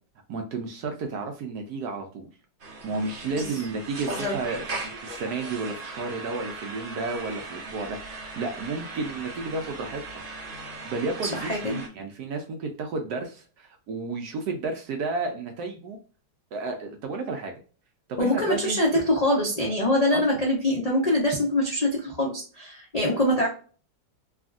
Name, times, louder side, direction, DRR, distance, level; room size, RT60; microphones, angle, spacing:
voice 1, 0.3-2.3 2.8-10.2 10.8-16.0 16.5-17.5 18.1-18.8 20.1-20.2, right 3 dB, 75° right, 4 dB, 0.9 m, -32 dB
sound 1, 2.6-11.9, right 3 dB, 45° right, 0.7 m, -38 dB
voice 2, 11.4-11.8 18.2-23.5, left 1 dB, 75° left, -3 dB, 0.3 m, -24 dB
3.4 x 2.4 x 2.3 m, 0.38 s
omnidirectional pair, 2.1 m